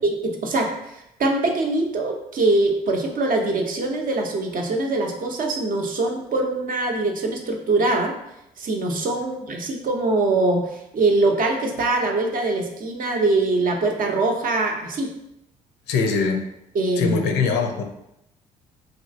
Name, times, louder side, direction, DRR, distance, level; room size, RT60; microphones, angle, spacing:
voice 1, 0.0-8.1 8.6-15.1 16.7-17.2, right 2 dB, 50° right, 2 dB, 0.6 m, -23 dB
voice 2, 15.9-16.4 17.0-17.8, left 5 dB, 70° left, 4 dB, 0.5 m, -22 dB
3.0 x 2.5 x 2.5 m, 0.83 s
hypercardioid pair, 45°, 18 cm